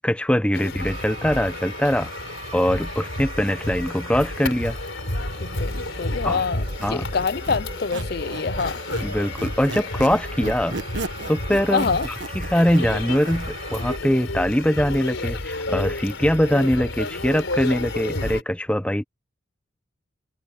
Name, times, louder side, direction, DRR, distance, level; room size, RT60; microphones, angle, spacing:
voice 1, 0.0-2.1 2.5-4.8 6.2-6.5 6.8-7.1 9.0-10.8 11.3-19.0, equal, 5° left, 0.7 m, -22 dB
sound 1, 0.5-18.4, left 2 dB, 80° left, 4.1 m, -31 dB
sound 2, 0.8-14.0, right 4 dB, 30° right, 6.7 m, -42 dB
voice 2, 5.4-6.6 6.9-8.8 11.7-12.1, left 5 dB, 50° left, 0.5 m, -26 dB
Squeak, 6.6-9.1 9.4-13.5, right 3 dB, 65° right, 1.3 m, -34 dB
head